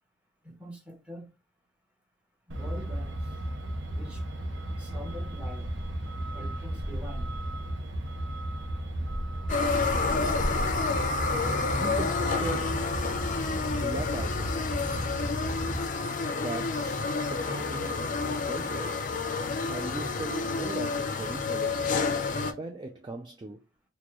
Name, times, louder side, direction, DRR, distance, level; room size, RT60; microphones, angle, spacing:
voice 1, 0.4-1.3 2.5-3.2 3.9-4.2 4.8-5.7 6.3-7.3, equal, 5° right, 1.1 m, -44 dB
Truck, 2.5-15.9, right 1 dB, 75° right, 0.7 m, -34 dB
sound 1, 9.5-22.5, left 4 dB, 45° left, 0.5 m, -29 dB
voice 2, 11.7-12.9 13.7-14.8 16.3-19.2 19.7-22.0 22.6-23.6, right 2 dB, 25° right, 0.4 m, -39 dB
4.2 x 2.2 x 3.0 m
head